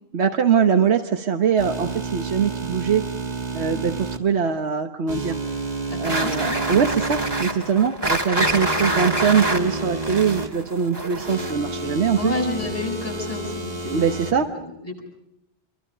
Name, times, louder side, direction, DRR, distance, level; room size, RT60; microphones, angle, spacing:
voice 1, 0.1-3.1 3.5-5.3 6.0-12.3 13.9-14.5, right 7 dB, 85° right, 6 dB, 1.4 m, -22 dB
sound 1, 1.6-4.2 5.1-7.4 8.4-10.5 11.2-14.3, right 3 dB, 40° right, 2.1 m, -30 dB
voice 2, 5.9-6.6 7.7-7.9 11.8-15.0, left 2 dB, 35° left, 0 dB, 8.1 m, -31 dB
sound 2, 6.0-11.7, right 1 dB, 20° right, 2.2 m, -26 dB
28.5 x 24.0 x 5.2 m, 0.84 s
omnidirectional pair, 1.1 m